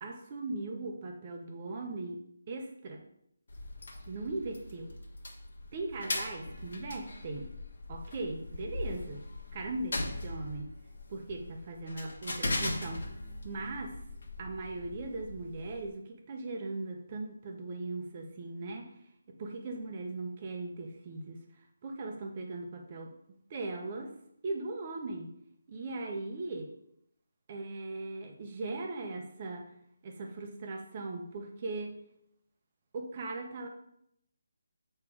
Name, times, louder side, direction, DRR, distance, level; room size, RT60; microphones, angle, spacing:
voice 1, 0.0-2.2 2.5-3.0 4.1-4.9 5.7-7.5 7.9-9.2 9.5-10.8 11.1-13.0 13.4-14.0 14.4-18.9 19.3-23.1 23.5-24.1 24.4-25.3 25.7-26.7 27.5-29.7 30.0-32.0 32.9-33.7, right 2 dB, 30° right, 3 dB, 0.9 m, -39 dB
sound 1, 3.5-15.9, left 2 dB, 70° left, 1.3 m, -40 dB
6.9 x 3.3 x 4.8 m, 0.73 s
hypercardioid pair, 170°, 0 cm